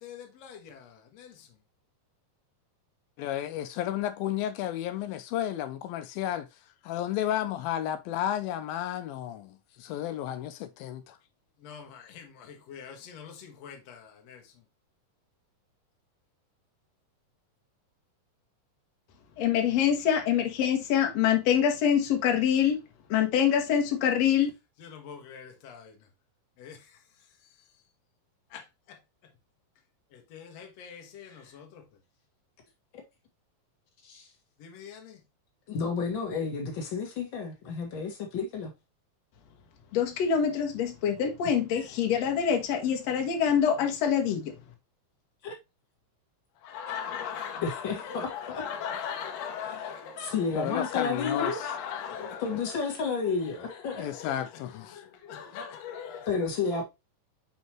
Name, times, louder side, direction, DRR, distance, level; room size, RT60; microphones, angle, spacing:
voice 1, 0.0-1.3 11.6-14.4 19.4-22.8 23.1-24.5 24.8-25.9 26.6-26.8 28.5-28.6 30.3-31.8 34.6-35.2 39.9-44.5 46.6-50.6 51.0-52.4 53.8-54.4 54.9-56.3, left 8 dB, 60° left, 2.1 m, -29 dB
voice 2, 3.2-6.5 6.8-11.2 50.6-51.6 54.0-55.0, left 11 dB, 85° left, 2.5 m, -32 dB
voice 3, 35.7-38.7 45.4-45.5 47.6-48.6 49.6-49.9 50.2-51.6 52.1-54.0 56.3-56.8, left 5 dB, 40° left, 2.1 m, -31 dB
5.7 x 5.5 x 3.0 m
omnidirectional pair, 4.1 m